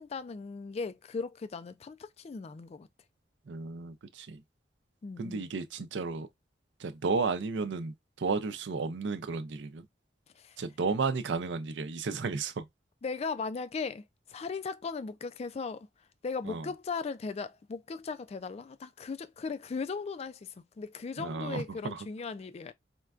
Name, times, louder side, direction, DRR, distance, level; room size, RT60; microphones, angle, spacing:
voice 1, 0.0-2.9 5.0-5.5 10.3-10.6 13.0-22.7, left 4 dB, 35° left, 0.3 m, -38 dB
voice 2, 3.5-4.4 5.2-6.3 6.8-9.9 10.6-12.7 16.4-16.6 21.2-22.1, right 4 dB, 80° right, 0.5 m, -33 dB
4.3 x 2.2 x 2.3 m
head